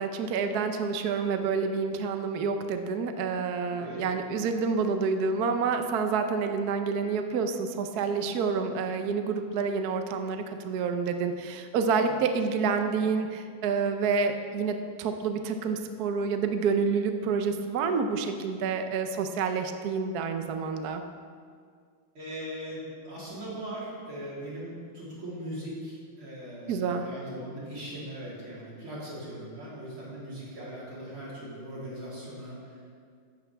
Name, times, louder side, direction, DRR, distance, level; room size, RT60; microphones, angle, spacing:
voice 1, 0.0-21.0 26.7-27.0, right 5 dB, 65° right, 6 dB, 1.1 m, -28 dB
voice 2, 22.1-33.0, right 1 dB, 85° right, -8 dB, 4.4 m, -40 dB
14.5 x 10.5 x 3.4 m, 2.1 s
omnidirectional pair, 2.3 m